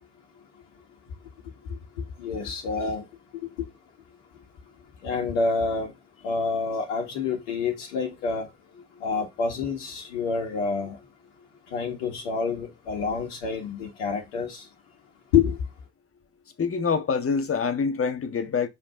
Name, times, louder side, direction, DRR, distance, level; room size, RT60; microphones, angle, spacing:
voice 1, 2.2-3.0 5.0-5.9 6.2-8.5 9.0-11.0 11.7-14.6 15.3-15.6, left 5 dB, 80° left, 1.8 m, -27 dB
voice 2, 16.6-18.7, left 5 dB, 40° left, 1.6 m, -26 dB
7.2 x 5.0 x 3.8 m
hypercardioid pair, 45°, 35 cm